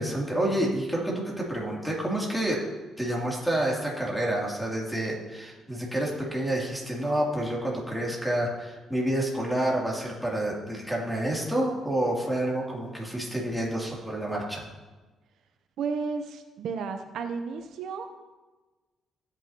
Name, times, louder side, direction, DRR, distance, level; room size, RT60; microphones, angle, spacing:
voice 1, 0.0-2.7 3.0-14.7, right 1 dB, ahead, -3 dB, 3.1 m, -29 dB
voice 2, 15.8-18.1, right 5 dB, 75° right, 7 dB, 0.8 m, -33 dB
16.0 x 8.9 x 3.0 m, 1.2 s
cardioid pair, 90°, 0 cm